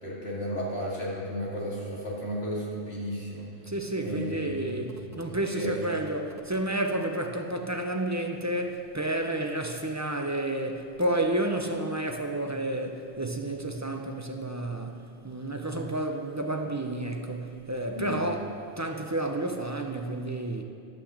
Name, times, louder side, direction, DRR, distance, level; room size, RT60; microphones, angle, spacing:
voice 1, 0.0-3.5 4.0-4.7 5.1-5.2 5.5-5.7 17.9-18.1, equal, 80° left, 3.1 m, -34 dB
voice 2, 3.7-20.6, right 1 dB, 20° right, 0.6 m, -31 dB
12.0 x 5.9 x 7.3 m
omnidirectional pair, 1.0 m